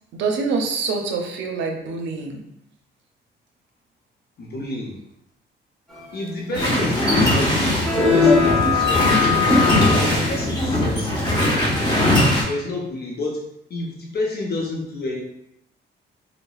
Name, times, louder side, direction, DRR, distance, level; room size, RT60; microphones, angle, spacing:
voice 1, 0.1-2.4 6.5-6.8, right 4 dB, 70° right, 3 dB, 0.5 m, -26 dB
voice 2, 4.4-5.0 6.1-9.5 10.3-11.4 12.4-13.4 13.7-15.2, left 2 dB, 55° left, -2 dB, 0.6 m, -29 dB
sound 1, 6.5-12.4, left 1 dB, 20° left, 1.2 m, -20 dB
sound 2, 7.7-11.4, left 5 dB, ahead, 0.8 m, -21 dB
3.8 x 2.0 x 2.3 m, 0.82 s
cardioid pair, 90°, 20 cm